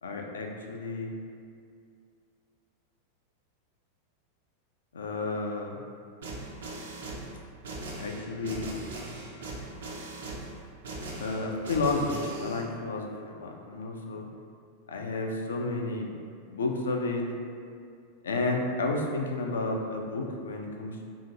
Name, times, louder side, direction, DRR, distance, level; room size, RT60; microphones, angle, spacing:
voice 1, 0.0-1.1 4.9-5.8 8.0-8.8 11.2-14.3 14.9-16.1 16.5-17.3 18.2-21.0, left 3 dB, 65° left, 1 dB, 0.3 m, -31 dB
sound 1, 6.2-12.6, right 2 dB, 65° right, 0.5 m, -39 dB
2.8 x 2.5 x 2.6 m, 2.3 s
figure-of-eight pair, 90°, 0 cm